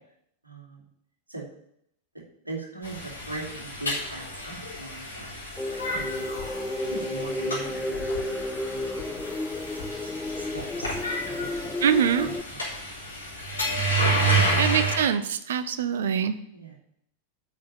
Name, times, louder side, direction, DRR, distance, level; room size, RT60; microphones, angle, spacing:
voice 1, 0.4-0.8 1.3-1.5 2.4-5.4 5.9-6.2 6.8-8.1 8.7-9.1 10.3-11.7 12.2-12.6 14.3-14.6 16.5-16.7, right 3 dB, 80° right, -3 dB, 2.8 m, -39 dB
sound 1, 2.8-15.0, right 2 dB, 75° left, 3.9 m, -30 dB
sound 2, 5.6-12.4, left 1 dB, 10° left, 0.5 m, -32 dB
voice 2, 11.8-12.3 14.6-16.3, right 8 dB, 60° right, 12 dB, 0.7 m, -24 dB
8.6 x 6.0 x 7.4 m, 0.73 s
figure-of-eight pair, 90°, 0 cm